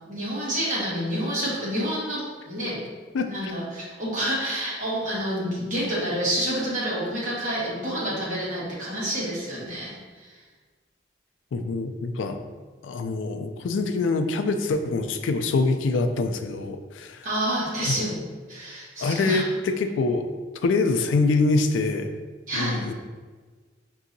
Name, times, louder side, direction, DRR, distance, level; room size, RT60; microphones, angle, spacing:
voice 1, 0.1-2.8 3.3-10.3 17.2-18.2 18.5-19.5 22.5-22.8, equal, 45° right, -7 dB, 1.4 m, -28 dB
voice 2, 3.1-3.5 11.5-12.4 12.8-17.3 17.8-18.0 19.0-20.2 20.6-22.1 22.5-22.9, left 3 dB, 85° left, 7 dB, 0.3 m, -25 dB
5.7 x 2.7 x 2.6 m, 1.4 s
head